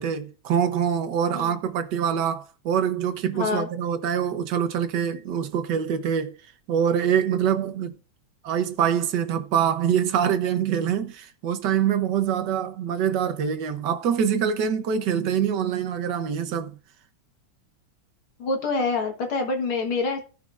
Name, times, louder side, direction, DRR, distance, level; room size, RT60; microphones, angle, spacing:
voice 1, 0.0-6.3 6.7-8.0 8.4-16.7, right 8 dB, 65° right, 1.3 m, -24 dB
voice 2, 3.3-3.7 18.4-20.2, left 3 dB, 75° left, 2.2 m, -26 dB
15.5 x 5.9 x 2.5 m
omnidirectional pair, 2.4 m